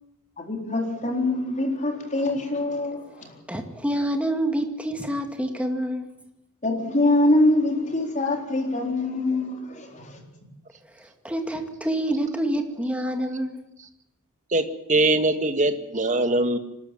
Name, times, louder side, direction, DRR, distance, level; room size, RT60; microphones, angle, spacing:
voice 1, 0.4-3.1 6.6-10.2, left 2 dB, 35° left, 4.0 m, -24 dB
voice 2, 3.5-6.1 11.0-13.6, right 1 dB, 5° right, 2.2 m, -27 dB
voice 3, 14.5-16.6, right 2 dB, 35° right, 1.7 m, -22 dB
25.0 x 13.0 x 9.1 m
head